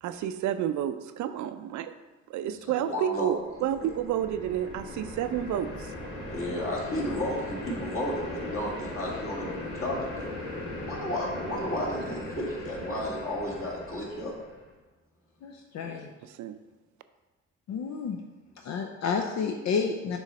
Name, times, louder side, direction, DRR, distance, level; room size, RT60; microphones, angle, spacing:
voice 1, 0.0-1.9 2.3-5.9 16.2-16.6, right 11 dB, 75° right, 11 dB, 0.5 m, -30 dB
voice 2, 2.4-3.3 6.3-10.3 10.8-14.3 15.8-16.0, left 1 dB, 45° left, -3 dB, 2.0 m, -33 dB
sound 1, 3.3-14.7, left 2 dB, 85° left, 1.9 m, -38 dB
voice 3, 15.4-16.1 17.7-18.2 18.6-20.2, left 5 dB, 60° left, 3 dB, 0.6 m, -30 dB
6.4 x 3.2 x 5.3 m, 1.2 s
cardioid pair, 90°, 30 cm